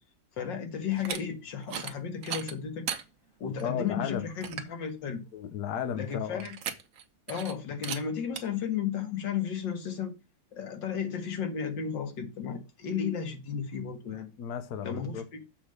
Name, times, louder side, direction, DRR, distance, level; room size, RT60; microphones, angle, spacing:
voice 1, 0.4-2.9 3.4-5.2 5.9-6.5 7.3-10.1 10.5-14.3 14.8-15.4, left 7 dB, 85° left, 2.0 m, -34 dB
sound 1, 0.9-1.2 1.6-1.9 2.2-3.0 3.6-3.7 4.1-4.2 4.4-4.7 6.4-7.0 7.3-7.5 7.8-8.0 8.4-8.5, right 7 dB, 55° right, 1.2 m, -36 dB
voice 2, 3.6-4.3 5.3-6.5 14.4-15.2, left 8 dB, 65° left, 1.3 m, -34 dB
7.1 x 3.8 x 6.4 m
omnidirectional pair, 1.9 m